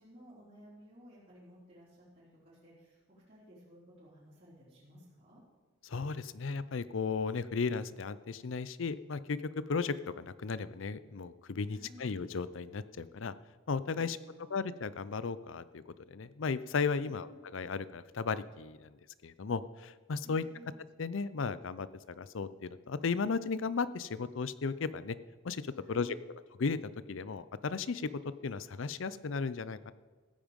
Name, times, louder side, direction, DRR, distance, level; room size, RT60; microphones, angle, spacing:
voice 1, 0.0-5.4 11.7-12.1 14.0-14.7 17.0-17.4 20.2-20.7 25.8-26.2, equal, 40° right, -11 dB, 4.0 m, -56 dB
voice 2, 5.8-9.4 9.7-13.3 13.7-14.2 14.5-19.0 19.2-20.4 21.0-25.2 25.4-26.1 26.6-28.1 28.4-29.9, left 5 dB, 75° left, 16 dB, 0.5 m, -35 dB
15.5 x 9.0 x 5.2 m, 1.4 s
head